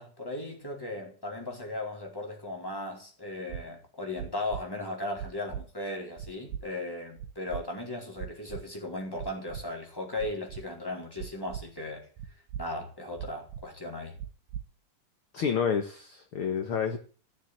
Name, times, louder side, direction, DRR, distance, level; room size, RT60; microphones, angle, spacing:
voice 1, 0.0-12.0 12.6-14.2, left 2 dB, 5° left, 4.2 m, -37 dB
sound 1, 3.5-3.6 4.2-4.6 5.2-5.6 6.2-6.6 7.2-7.6 8.2-8.6 9.2-9.6 10.2-10.6 11.2-11.6 12.2-12.6 13.2-13.6 14.2-14.6, right 9 dB, 85° right, 2.7 m, -38 dB
voice 2, 15.3-17.0, left 7 dB, 50° left, 2.0 m, -29 dB
16.5 x 7.2 x 9.7 m
omnidirectional pair, 3.7 m